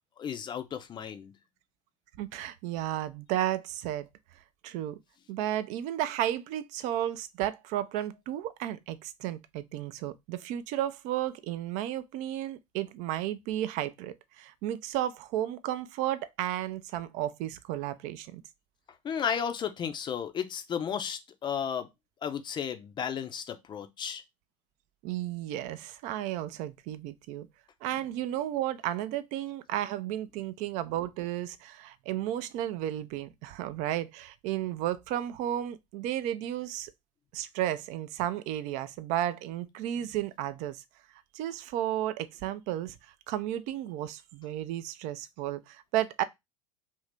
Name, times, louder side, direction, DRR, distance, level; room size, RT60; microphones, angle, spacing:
voice 1, 0.2-1.3 19.0-21.9 22.2-24.2, left 7 dB, 25° left, 0.5 m, -33 dB
voice 2, 2.2-4.1 4.6-5.0 5.3-18.4 25.0-27.5 27.8-36.9 37.3-40.8 41.3-42.9 43.3-46.2, right 12 dB, 45° right, 0.4 m, -33 dB
2.8 x 2.6 x 3.3 m
figure-of-eight pair, 75°, 17 cm